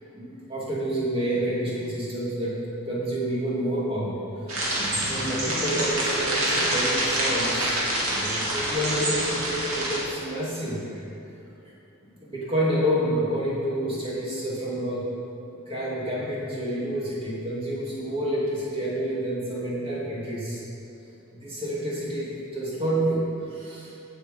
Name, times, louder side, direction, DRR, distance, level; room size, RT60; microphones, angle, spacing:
voice 1, 0.1-2.6 2.8-4.5 4.8-11.1 12.0-15.1 15.7-20.6 21.3-23.2 23.5-23.9, right 1 dB, 25° right, -7 dB, 3.0 m, -29 dB
sound 1, 4.5-10.0, right 1 dB, 80° right, 2.9 m, -26 dB
15.5 x 6.8 x 5.4 m, 2.8 s
head